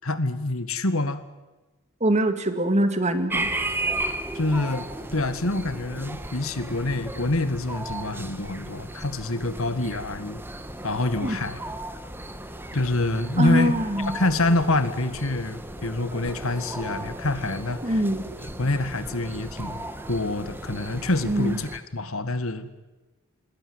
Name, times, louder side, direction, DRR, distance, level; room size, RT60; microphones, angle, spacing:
voice 1, 0.0-1.2 4.3-10.4 10.8-11.6 12.7-13.7 14.1-18.0 18.4-22.7, left 2 dB, 70° left, 11 dB, 1.9 m, -26 dB
voice 2, 2.0-3.5 11.2-11.4 13.4-14.2 17.8-18.3 21.2-21.6, right 1 dB, 30° right, 9 dB, 2.2 m, -23 dB
sound 1, 3.3-21.8, right 1 dB, 10° right, 1.8 m, -35 dB
27.5 x 20.5 x 8.0 m, 1.2 s
head